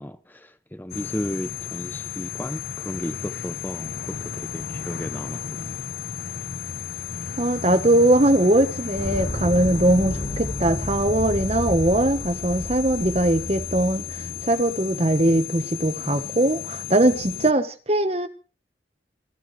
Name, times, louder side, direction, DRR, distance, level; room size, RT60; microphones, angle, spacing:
voice 1, 0.0-5.7, equal, 10° left, 0.8 m, -34 dB
sound 1, 0.9-17.5, left 8 dB, 60° left, 0.8 m, -34 dB
voice 2, 7.4-18.3, right 1 dB, 35° right, 1.2 m, -21 dB
sound 2, 9.0-14.5, equal, 45° left, 4.8 m, -31 dB
28.0 x 12.5 x 3.3 m
head